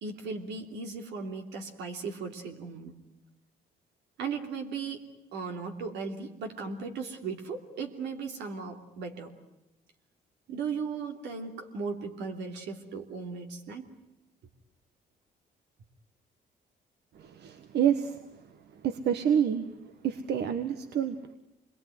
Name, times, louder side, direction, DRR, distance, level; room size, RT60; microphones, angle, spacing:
voice 1, 0.0-2.9 4.2-5.0 5.3-9.3 10.5-13.9, right 5 dB, 90° right, 4 dB, 3.1 m, -37 dB
voice 2, 17.1-18.2 18.8-19.7 20.0-21.4, right 8 dB, 75° right, 9 dB, 1.5 m, -28 dB
27.0 x 22.0 x 9.4 m, 0.91 s
cardioid pair, 85°, 17 cm